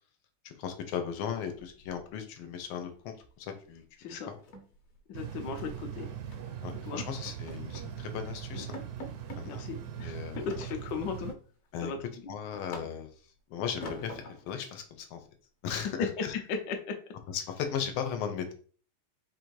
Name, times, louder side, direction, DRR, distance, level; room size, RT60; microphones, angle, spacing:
voice 1, 0.4-3.8 4.1-4.3 6.6-8.8 9.4-9.6 10.0-10.5 11.7-11.9 12.3-13.1 13.5-15.2 15.6-16.3 17.3-18.5, left 7 dB, 90° left, 6 dB, 1.6 m, -37 dB
sound 1, 1.6-2.4 2.7-2.9 3.2-3.4 3.7-3.8 4.2-5.8 6.3-6.6 7.0-8.0 8.3-8.4 8.7-9.5 10.5-11.2 11.7-13.3 13.8-14.6, left 1 dB, 55° left, 1.1 m, -46 dB
voice 2, 5.1-6.1 6.9-7.1 8.5-8.7 9.5-11.3 11.8-12.0 15.7-17.0, left 5 dB, 70° left, 4 dB, 1.2 m, -36 dB
sound 2, 5.1-11.3, right 10 dB, 75° right, 0.8 m, -40 dB
4.4 x 2.6 x 4.5 m, 0.42 s
omnidirectional pair, 2.3 m